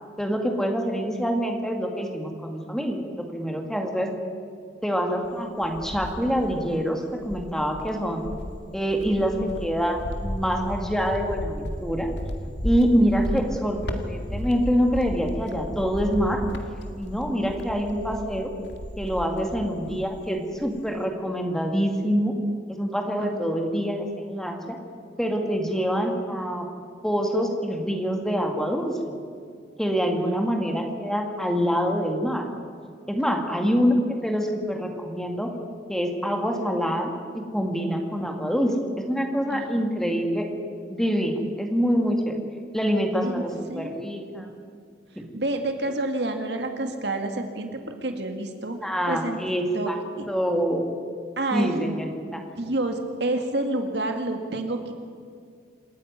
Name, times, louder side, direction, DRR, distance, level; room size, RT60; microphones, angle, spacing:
voice 1, 0.2-4.1 4.8-8.3 8.7-9.3 9.6-12.1 12.4-13.8 14.0-16.4 17.0-18.5 19.0-22.3 22.7-24.8 25.2-26.7 27.0-29.1 29.8-32.4 33.1-35.5 35.9-40.5 40.9-42.4 42.7-44.5 45.2-45.3 48.8-50.0 50.3-50.8 51.5-52.4, equal, 5° left, 2 dB, 2.2 m, -25 dB
Cricket, 5.2-6.8 7.2-20.2 20.5-21.0, equal, 65° left, 2.0 m, -34 dB
voice 2, 9.2-9.8 13.2-13.7 23.2-23.8 30.2-30.6 39.5-40.0 43.2-44.1 45.2-48.8 49.1-49.4 49.7-49.9 50.2-50.3 51.4-51.9 52.4-54.9, right 2 dB, 65° right, 5 dB, 2.1 m, -30 dB
27.5 x 10.5 x 9.6 m, 2.2 s
head